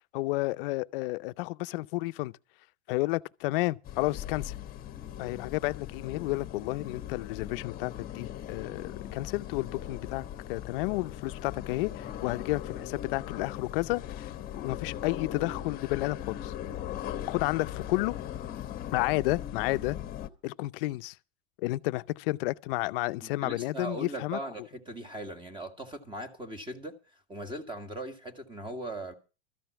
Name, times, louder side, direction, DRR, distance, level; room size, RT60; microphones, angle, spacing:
voice 1, 0.1-2.3 2.9-4.5 5.2-14.3 14.5-16.5 17.3-18.2 18.9-20.0 20.4-21.1 21.6-24.4, left 20 dB, 55° left, 0.6 m, -31 dB
sound 1, 3.8-20.3, left 11 dB, 25° left, 1.0 m, -39 dB
voice 2, 23.2-27.0 27.3-29.1, right 1 dB, 15° right, 1.8 m, -39 dB
13.5 x 5.7 x 9.3 m
supercardioid pair, 130°, 33 cm